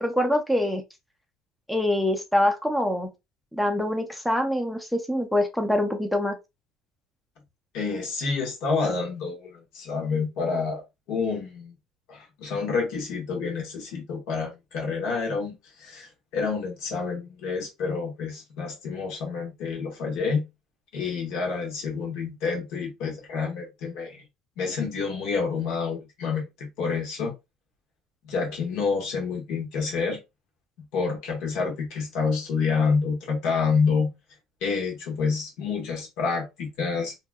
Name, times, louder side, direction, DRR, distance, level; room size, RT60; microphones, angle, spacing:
voice 1, 0.0-0.8 1.7-3.1 3.5-6.4, left 1 dB, ahead, 0.4 m, -24 dB
voice 2, 7.7-10.8 11.1-11.7 12.1-20.5 20.9-24.2 24.6-27.3 28.2-30.2 30.9-34.1 34.6-37.1, left 5 dB, 70° left, 1.2 m, -28 dB
2.8 x 2.5 x 2.2 m
cardioid pair, 135°, 0 cm